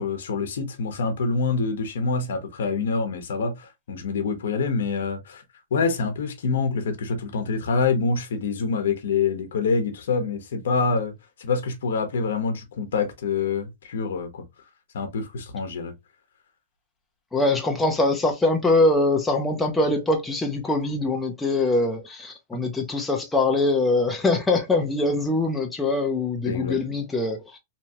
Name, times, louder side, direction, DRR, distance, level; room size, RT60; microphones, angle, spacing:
voice 1, 0.0-5.4 5.7-11.1 11.4-14.4 14.9-15.9 22.5-22.6 26.4-26.8, left 4 dB, 75° left, 0.8 m, -26 dB
voice 2, 17.3-27.6, left 2 dB, 5° left, 0.5 m, -23 dB
2.9 x 2.3 x 2.7 m
hypercardioid pair, 150°, 0 cm